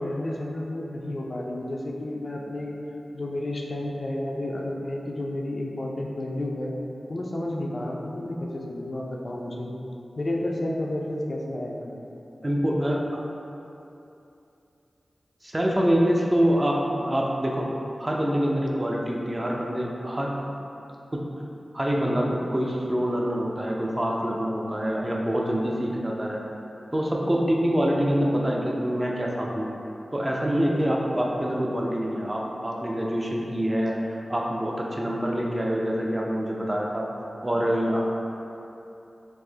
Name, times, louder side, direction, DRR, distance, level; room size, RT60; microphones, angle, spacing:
voice 1, 0.0-2.8 3.1-6.7 7.1-9.7 10.2-12.0, left 1 dB, 55° left, -2 dB, 0.4 m, -31 dB
voice 2, 12.4-13.3 15.4-17.7 18.0-20.3 21.1-21.2 21.7-26.4 26.9-29.7 30.1-34.0 34.3-37.0 37.4-38.1, equal, 25° right, -2 dB, 0.4 m, -25 dB
4.5 x 2.0 x 2.7 m, 2.8 s
cardioid pair, 55°, 0 cm